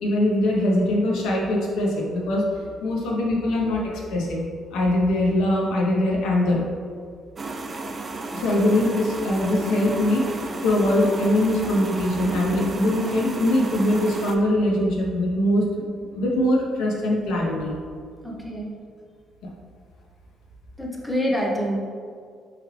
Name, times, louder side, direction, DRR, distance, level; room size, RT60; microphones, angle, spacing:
voice 1, 0.0-2.5 2.8-6.6 8.3-10.2 10.6-17.8, left 1 dB, 90° left, -2 dB, 0.7 m, -22 dB
sound 1, 7.4-14.4, right 3 dB, 35° right, 0.3 m, -33 dB
voice 2, 18.2-18.8 20.8-21.9, equal, 5° left, -2 dB, 0.7 m, -26 dB
3.6 x 3.2 x 3.1 m, 2.1 s
cardioid pair, 95°, 0 cm